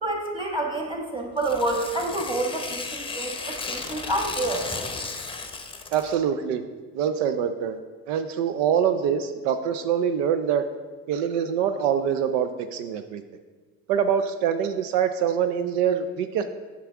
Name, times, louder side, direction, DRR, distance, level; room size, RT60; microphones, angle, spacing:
voice 1, 0.0-4.6, right 2 dB, 15° right, 1 dB, 1.6 m, -28 dB
Tearing, 1.4-6.2, left 4 dB, 15° left, 0.7 m, -34 dB
voice 2, 5.9-6.6 6.9-7.8 8.1-10.6 11.1-13.2 13.9-16.4, right 8 dB, 85° right, 9 dB, 0.5 m, -24 dB
8.0 x 6.0 x 3.5 m, 1.4 s
supercardioid pair, 85°, 37 cm